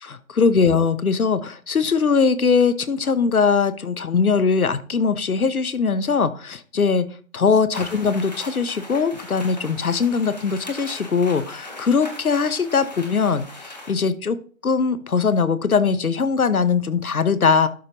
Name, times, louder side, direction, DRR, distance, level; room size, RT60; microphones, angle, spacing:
voice 1, 0.0-7.1 7.3-14.4 14.6-17.7, left 5 dB, 85° left, 14 dB, 1.0 m, -21 dB
sound 1, 7.7-13.9, left 2 dB, 30° left, 1.2 m, -39 dB
11.5 x 5.3 x 3.0 m, 0.41 s
figure-of-eight pair, 175°, 42 cm